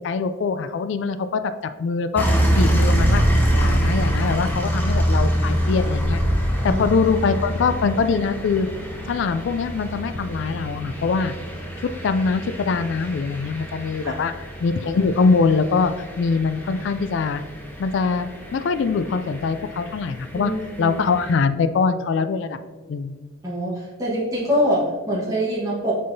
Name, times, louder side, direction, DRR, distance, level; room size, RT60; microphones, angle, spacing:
voice 1, 0.0-1.5 1.8-3.2 3.5-6.2 6.6-8.7 9.1-11.3 11.8-17.4 17.8-20.5 20.8-22.6 22.9-23.1, left 4 dB, 65° left, 11 dB, 0.3 m, -23 dB
sound 1, 2.2-21.3, equal, 10° left, 0.8 m, -26 dB
sound 2, 2.5-7.8, equal, 80° right, 1.0 m, -27 dB
voice 2, 20.3-21.0 23.4-26.0, equal, 15° right, -6 dB, 1.2 m, -24 dB
6.7 x 5.5 x 2.7 m, 1.4 s
head